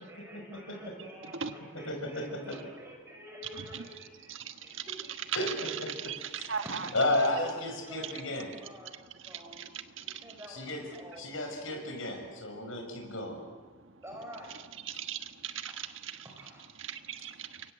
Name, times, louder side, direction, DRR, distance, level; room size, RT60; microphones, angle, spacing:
voice 1, 0.0-4.4 4.6-5.2 5.6-6.1 6.6-9.0 9.2-9.7 10.2-11.3 11.6-11.8 14.0-14.5 16.3-16.7, equal, 10° right, 0 dB, 6.0 m, -49 dB
voice 2, 1.9-2.5 5.3-5.5 5.8-5.9 6.9-8.5 10.5-10.8 11.2-13.4, left 1 dB, 70° left, 3 dB, 6.3 m, -32 dB
voice 3, 3.5-3.8 4.3-4.9 5.5-6.9 8.0-8.1 8.7-10.4 12.3-12.9 13.6-14.0 14.8-16.3 16.7-17.7, right 7 dB, 60° right, 8 dB, 1.5 m, -40 dB
29.0 x 23.5 x 7.8 m, 1.4 s
head